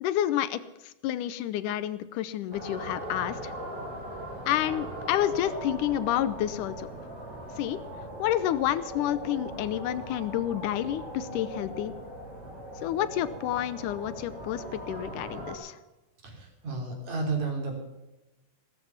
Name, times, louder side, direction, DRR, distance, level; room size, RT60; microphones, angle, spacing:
voice 1, 0.0-3.5 4.5-6.9 7.6-7.8 8.2-11.9 12.8-15.8, left 12 dB, 80° left, 15 dB, 2.3 m, -29 dB
sound 1, 2.5-15.6, right 1 dB, 30° right, 5.6 m, -40 dB
voice 2, 16.2-17.8, right 3 dB, 60° right, 2 dB, 4.6 m, -32 dB
16.5 x 13.5 x 5.8 m, 1.0 s
omnidirectional pair, 3.6 m